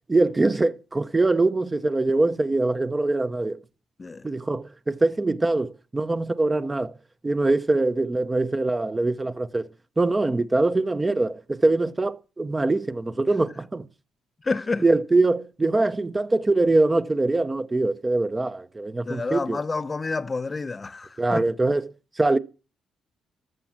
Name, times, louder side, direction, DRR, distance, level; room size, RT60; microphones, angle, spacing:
voice 1, 0.1-3.6 4.2-6.9 7.2-9.7 10.0-13.9 14.8-19.6 21.2-22.4, right 2 dB, 20° right, 0.7 m, -23 dB
voice 2, 14.4-14.8 19.1-21.4, left 3 dB, 25° left, 0.7 m, -29 dB
13.5 x 7.0 x 7.3 m
cardioid pair, 90°, 0 cm